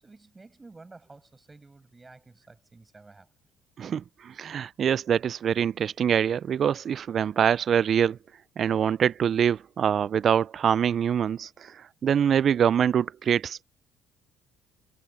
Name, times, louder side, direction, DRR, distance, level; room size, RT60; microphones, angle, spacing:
voice 1, 0.0-3.3, right 3 dB, 20° right, 6.3 m, -51 dB
voice 2, 3.8-8.2 8.6-13.6, right 8 dB, 50° right, 0.3 m, -24 dB
supercardioid pair, 80°, 0 cm